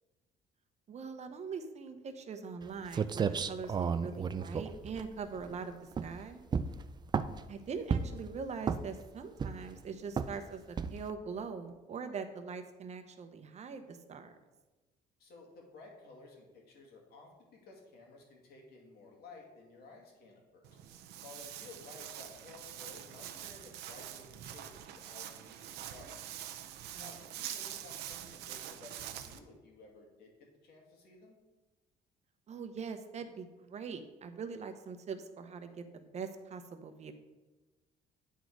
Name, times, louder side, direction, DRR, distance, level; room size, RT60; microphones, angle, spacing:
voice 1, 0.9-6.4 7.5-14.3 26.9-27.1 32.5-37.1, right 5 dB, 40° right, 8 dB, 0.8 m, -42 dB
sound 1, 2.6-2.7 2.9-5.5 5.9-6.2 6.5-7.5 7.9-8.3 8.6-9.0 9.4-9.8 10.2-10.4 10.8-11.1, right 6 dB, 25° right, 0.4 m, -33 dB
voice 2, 15.2-20.7 21.2-26.1 27.0-30.3 30.6-31.4, left 3 dB, 65° left, 0 dB, 2.1 m, -55 dB
Walk footsteps, 20.6-29.4, right 11 dB, 85° right, 0.6 m, -45 dB
9.3 x 4.1 x 4.6 m, 1.1 s
cardioid pair, 110°, 17 cm